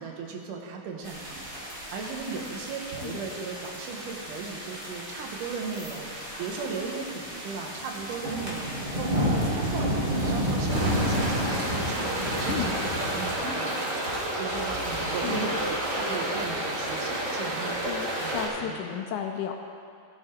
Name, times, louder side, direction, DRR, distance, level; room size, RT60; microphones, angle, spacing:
voice 1, 0.0-17.9 18.2-18.3 18.6-18.9, right 5 dB, 75° right, 1 dB, 2.5 m, -37 dB
sound 1, 1.0-13.3, equal, 20° right, 1.6 m, -31 dB
voice 2, 2.8-3.2 12.5-12.7 15.0-15.6 17.9-19.6, left 9 dB, 80° left, 4 dB, 1.8 m, -34 dB
sound 2, 10.7-18.5, right 1 dB, 50° right, 0.9 m, -30 dB
14.0 x 6.7 x 4.4 m, 2.3 s
omnidirectional pair, 3.9 m